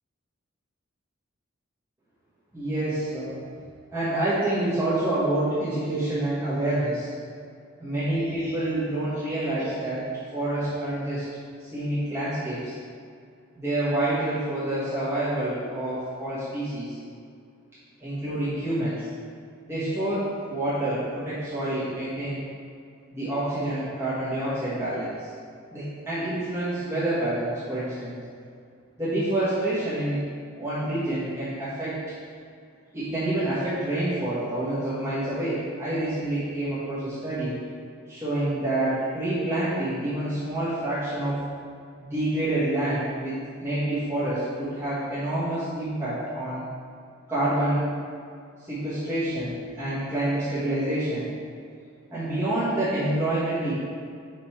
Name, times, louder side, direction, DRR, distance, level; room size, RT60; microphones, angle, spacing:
voice 1, 2.5-3.4 3.9-7.1 7.8-10.0 10.3-11.3 11.6-12.7 13.5-17.0 18.0-19.1 19.7-22.4 23.1-25.3 25.7-28.1 29.0-30.2 30.6-32.0 32.9-37.6 38.1-41.4 42.0-46.6 47.3-47.8 48.6-51.3 52.1-53.8, right 1 dB, 10° right, -13 dB, 1.4 m, -27 dB
5.3 x 5.0 x 4.4 m, 2.3 s
head